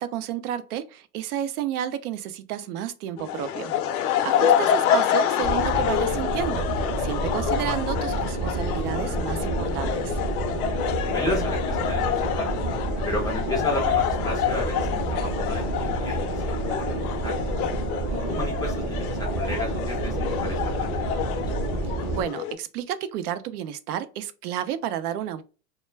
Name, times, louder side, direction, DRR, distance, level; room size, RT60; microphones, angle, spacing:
voice 1, 0.0-10.2 21.8-25.4, right 10 dB, 80° right, 0.6 m, -31 dB
sound 1, 3.2-22.5, left 9 dB, 75° left, 0.6 m, -27 dB
sound 2, 5.4-22.2, right 2 dB, 30° right, 0.6 m, -29 dB
voice 2, 11.1-12.5 13.0-17.4 18.1-21.4, left 1 dB, 10° left, 0.4 m, -34 dB
2.2 x 2.2 x 3.1 m
supercardioid pair, 135°, 45 cm